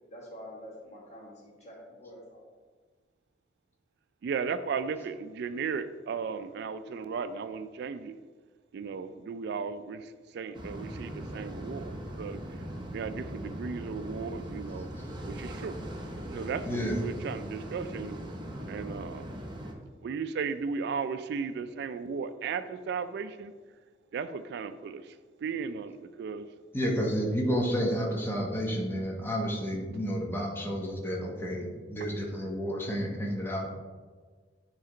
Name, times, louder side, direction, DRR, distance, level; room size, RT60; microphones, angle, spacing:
voice 1, 0.1-2.5, equal, 40° left, -4 dB, 1.8 m, -47 dB
voice 2, 4.2-8.2 8.7-12.4 12.9-14.9 15.2-15.8 16.3-18.2 18.7-19.3 20.0-23.5 24.1-25.1 25.4-26.5, right 5 dB, 60° right, 11 dB, 0.3 m, -35 dB
sound 1, 10.5-19.7, right 1 dB, 25° right, 0.8 m, -40 dB
voice 3, 16.7-17.0 26.7-33.7, equal, 10° left, -2 dB, 1.0 m, -31 dB
9.4 x 3.3 x 3.8 m, 1.5 s
head